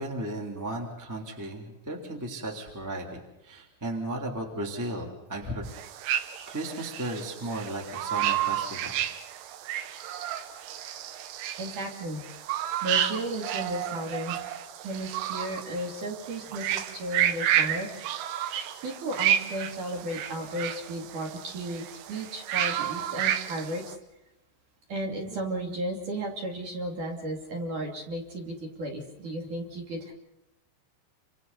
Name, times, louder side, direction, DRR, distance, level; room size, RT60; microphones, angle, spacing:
voice 1, 0.0-5.6 6.4-9.0, right 1 dB, 5° right, 0 dB, 1.7 m, -35 dB
sound 1, 5.7-24.0, right 11 dB, 75° right, 3.5 m, -31 dB
voice 2, 11.6-12.2 12.6-14.5 14.8-18.0 18.5-23.9 24.9-30.1, right 1 dB, 45° right, 0 dB, 3.6 m, -34 dB
30.0 x 26.5 x 4.1 m, 0.92 s
omnidirectional pair, 5.9 m